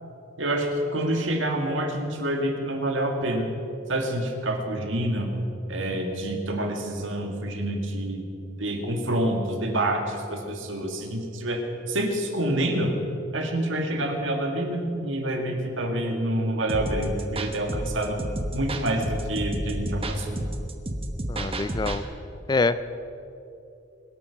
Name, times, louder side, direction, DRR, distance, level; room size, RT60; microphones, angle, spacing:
voice 1, 0.4-3.5 3.9-5.3 5.7-8.2 8.6-12.9 13.3-18.2 18.5-20.3, right 1 dB, 70° right, 3 dB, 2.0 m, -27 dB
sound 1, 16.7-22.0, right 1 dB, 30° right, 1.1 m, -31 dB
voice 2, 21.3-22.0 22.5-22.9, left 3 dB, 20° left, 13 dB, 0.4 m, -25 dB
23.0 x 8.4 x 5.8 m, 2.8 s
head